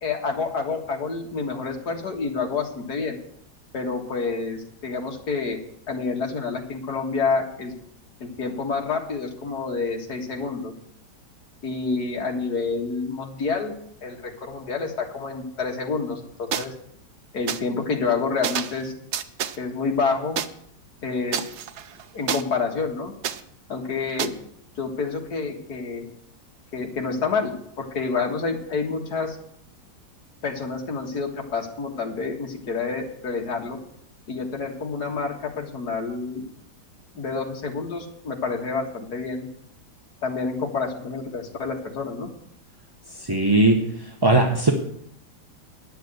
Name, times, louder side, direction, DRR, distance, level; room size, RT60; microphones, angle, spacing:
voice 1, 0.0-3.2 3.7-5.6 5.9-7.7 8.2-10.7 11.6-13.7 14.0-16.7 17.3-18.9 19.6-20.4 21.0-21.5 22.1-23.1 23.7-24.3 24.8-26.0 26.7-29.4 30.4-33.8 34.3-36.4 37.1-39.5 40.2-42.3, left 4 dB, 65° left, 2 dB, 2.3 m, -28 dB
sound 1, 16.5-16.6 17.5-17.6 18.4-18.8 19.1-19.6 20.4-20.5 21.3-22.4 23.2-23.4 24.2-24.3, right 8 dB, 65° right, 0.7 m, -28 dB
voice 2, 43.2-43.8 44.2-44.7, right 2 dB, 20° right, 2 dB, 0.6 m, -18 dB
10.5 x 6.9 x 7.9 m, 0.70 s
omnidirectional pair, 1.9 m